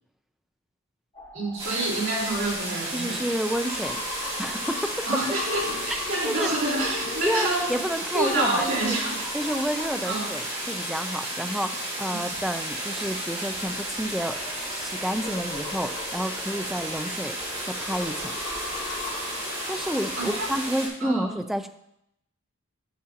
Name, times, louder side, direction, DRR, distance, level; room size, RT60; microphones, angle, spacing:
sound 1, 1.1-11.7 13.7-20.6, left 3 dB, 25° left, 3.2 m, -40 dB
voice 1, 1.3-3.3 5.1-7.8 8.1-9.2 10.0-10.3 20.2-20.6 21.0-21.3, right 2 dB, 60° right, -4 dB, 4.0 m, -28 dB
sound 2, 1.6-20.9, right 1 dB, 30° right, 4.2 m, -33 dB
voice 2, 2.9-4.0 4.4-5.2 6.2-6.5 7.2-9.0 9.3-14.4 14.7-17.4 17.7-18.3 19.7-21.7, equal, ahead, 6 dB, 0.5 m, -30 dB
11.5 x 10.0 x 2.9 m, 0.76 s
head